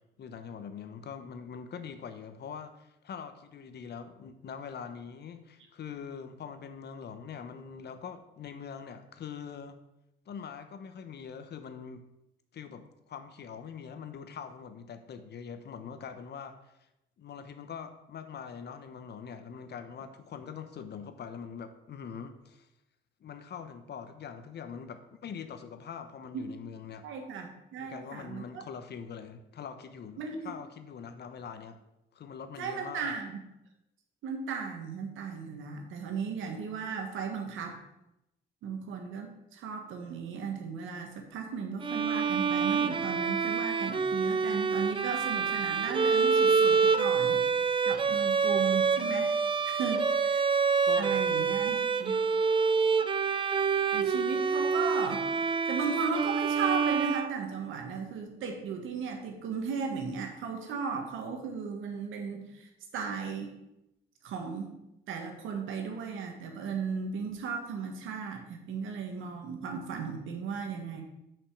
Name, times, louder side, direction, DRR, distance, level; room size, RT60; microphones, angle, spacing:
voice 1, 0.2-9.8 10.3-12.0 12.5-16.6 17.2-22.7 23.2-27.1 27.8-31.8 32.1-33.1 50.8-51.5, left 7 dB, 55° left, 9 dB, 0.9 m, -43 dB
voice 2, 27.0-28.6 30.2-30.5 32.6-33.4 34.2-37.8 38.6-47.4 47.8-49.3 49.6-50.4 51.0-52.2 53.6-55.3 55.7-63.5 64.2-64.7 65.1-71.0, right 5 dB, 85° right, 3 dB, 1.5 m, -36 dB
Bowed string instrument, 41.8-57.8, right 5 dB, 25° right, 0.5 m, -27 dB
5.8 x 5.3 x 6.5 m, 0.87 s
cardioid pair, 90°, 20 cm